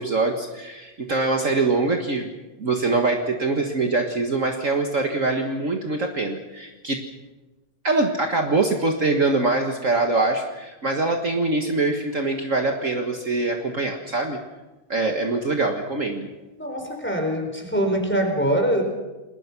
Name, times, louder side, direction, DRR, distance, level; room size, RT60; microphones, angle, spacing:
voice 1, 0.0-2.3 2.6-7.0 7.8-14.4 14.9-16.3, right 3 dB, 50° right, 3 dB, 0.9 m, -23 dB
voice 2, 16.6-18.8, right 1 dB, 5° left, 2 dB, 4.1 m, -23 dB
29.5 x 21.0 x 6.1 m, 1.2 s
omnidirectional pair, 4.0 m